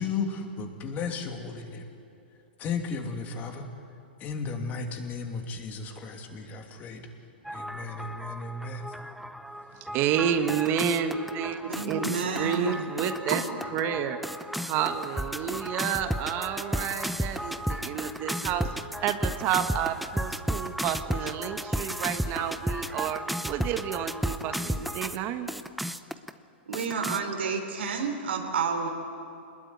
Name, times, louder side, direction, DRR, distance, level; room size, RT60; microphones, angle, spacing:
voice 1, 0.0-1.8 2.6-3.7 4.2-7.0 7.5-8.9, left 4 dB, 30° left, 4 dB, 2.9 m, -34 dB
sound 1, 7.4-25.2 25.5-26.3 26.7-27.2, equal, ahead, 0.7 m, -34 dB
voice 2, 9.9-12.1 12.3-13.4 13.7-14.2 14.7-18.7 19.0-25.5, right 9 dB, 35° right, 8 dB, 1.5 m, -30 dB
voice 3, 11.7-12.9 13.3-13.4 26.7-28.9, right 5 dB, 80° right, 3 dB, 3.7 m, -30 dB
25.5 x 20.5 x 9.7 m, 2.8 s
hypercardioid pair, 135°, 6 cm